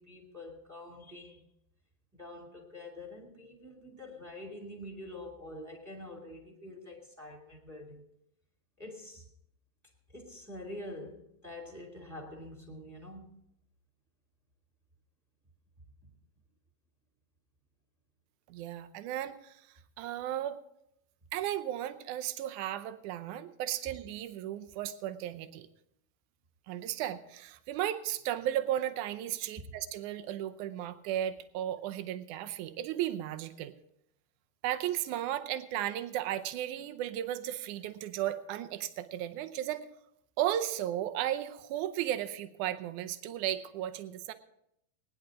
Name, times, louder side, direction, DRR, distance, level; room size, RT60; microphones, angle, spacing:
voice 1, 0.0-1.4 2.1-8.0 8.8-9.3 10.1-13.4 16.0-16.1, left 1 dB, 5° right, -1 dB, 1.7 m, -46 dB
voice 2, 18.5-19.7 20.0-20.6 21.3-25.7 26.7-33.7 34.6-39.9 40.4-44.3, right 12 dB, 80° right, 9 dB, 1.8 m, -35 dB
21.0 x 10.5 x 3.7 m, 0.76 s
omnidirectional pair, 4.4 m